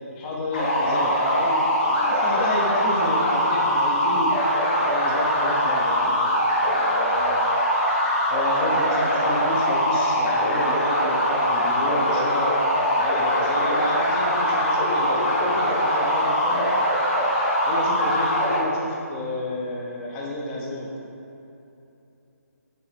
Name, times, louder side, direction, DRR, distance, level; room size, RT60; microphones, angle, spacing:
voice 1, 0.1-4.3 4.9-6.4 6.6-7.4 8.3-12.5 13.0-16.7 17.6-20.9, left 1 dB, 10° left, -3 dB, 0.8 m, -31 dB
sound 1, 0.5-18.6, equal, 30° left, 1.9 m, -22 dB
9.2 x 4.0 x 6.7 m, 2.8 s
hypercardioid pair, 170°, 9 cm